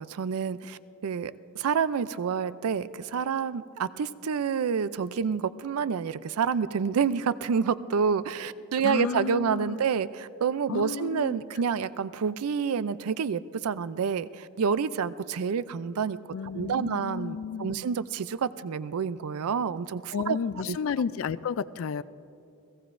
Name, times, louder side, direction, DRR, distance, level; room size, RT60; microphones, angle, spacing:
voice 1, 0.0-16.2 16.5-20.4 20.7-20.8, right 6 dB, 85° right, 16 dB, 0.4 m, -28 dB
voice 2, 8.8-9.8 10.7-11.4 16.3-17.8 20.1-22.0, left 6 dB, 65° left, 15 dB, 0.3 m, -32 dB
29.5 x 16.5 x 2.6 m, 2.7 s
head